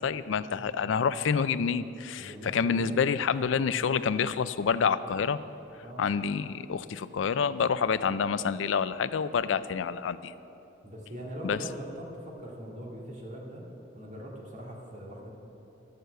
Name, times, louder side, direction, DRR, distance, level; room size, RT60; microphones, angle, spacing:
voice 1, 0.0-5.4 6.0-10.3 11.4-11.6, left 6 dB, 85° left, 15 dB, 0.4 m, -28 dB
voice 2, 2.2-2.8 3.4-3.5 5.8-6.1 10.8-13.6 13.9-15.3, equal, 45° right, -3 dB, 2.1 m, -41 dB
12.5 x 6.6 x 7.9 m, 2.9 s
head